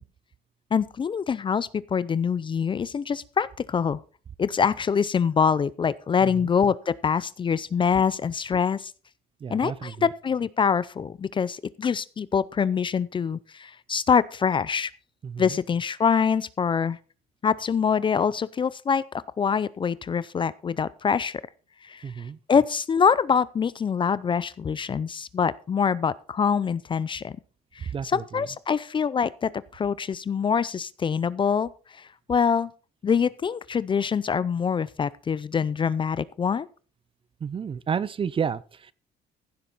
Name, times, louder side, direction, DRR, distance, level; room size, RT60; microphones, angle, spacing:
voice 1, 0.7-4.0 4.4-8.9 9.5-14.9 15.4-17.0 17.4-19.0 19.4-21.4 21.8-22.0 22.5-27.4 27.7-32.7 33.0-36.7, left 6 dB, 30° left, 0.5 m, -25 dB
voice 2, 9.4-10.1 15.2-15.6 22.0-22.4 27.9-28.4 37.4-38.9, right 7 dB, 30° right, 0.6 m, -31 dB
15.5 x 7.3 x 4.0 m
cardioid pair, 110°, 17 cm